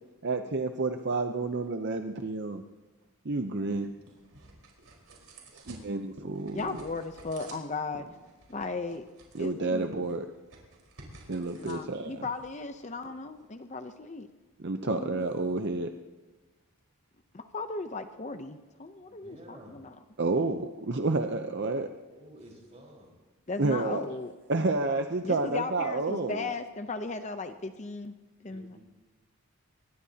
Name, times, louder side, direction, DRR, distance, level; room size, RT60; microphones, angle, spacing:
voice 1, 0.2-2.6 3.2-3.9 5.5-6.8 9.3-10.3 11.3-12.2 14.6-15.9 20.2-21.9 23.6-24.0 24.5-26.5, right 3 dB, 50° right, 6 dB, 0.6 m, -30 dB
sound 1, 3.3-13.5, right 2 dB, 80° right, 4.4 m, -52 dB
voice 2, 6.5-8.0 8.5-9.0 9.4-9.9 11.6-14.3 14.9-15.3 17.3-20.0 23.5-24.3 25.2-28.1 28.4-28.8, left 3 dB, 30° left, 8 dB, 0.6 m, -36 dB
voice 3, 19.1-19.8 22.1-23.1 28.5-28.8, right 1 dB, 30° right, -1 dB, 4.6 m, -51 dB
23.5 x 20.5 x 2.8 m, 1.2 s
head